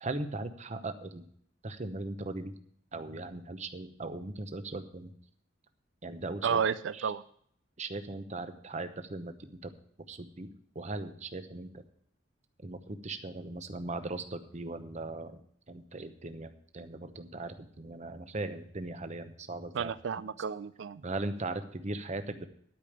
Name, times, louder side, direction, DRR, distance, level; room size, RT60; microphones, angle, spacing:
voice 1, 0.0-1.2 1.6-2.5 2.9-5.1 6.0-6.6 6.9-7.1 7.8-9.7 10.1-10.5 10.7-11.8 12.6-15.4 15.7-19.9 21.0-22.5, right 2 dB, 40° right, 9 dB, 0.9 m, -39 dB
voice 2, 6.4-7.2 19.7-21.0, right 7 dB, 70° right, 15 dB, 0.4 m, -31 dB
12.0 x 5.1 x 8.6 m, 0.64 s
head